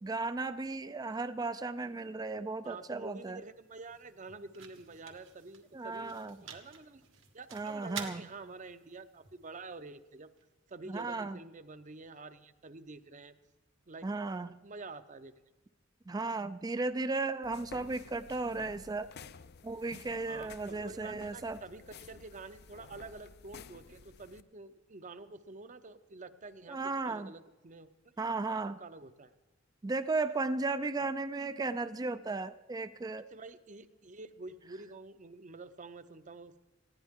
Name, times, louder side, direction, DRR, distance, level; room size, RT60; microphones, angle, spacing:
voice 1, 0.0-3.4 5.7-6.4 7.5-8.2 10.9-11.4 14.0-14.5 16.1-19.1 19.6-21.6 26.7-27.3 28.2-28.8 29.8-33.3, right 3 dB, 20° right, 13 dB, 0.4 m, -35 dB
voice 2, 2.6-7.0 7.3-10.3 10.7-13.3 13.9-14.1 14.4-15.3 20.3-27.9 28.8-29.3 33.3-36.6, right 3 dB, 40° right, 11 dB, 0.7 m, -48 dB
sound 1, 3.2-11.1, right 7 dB, 80° right, 1.7 m, -50 dB
sound 2, 17.4-24.4, left 5 dB, 55° left, 0.5 m, -53 dB
19.5 x 15.0 x 3.6 m, 1.1 s
head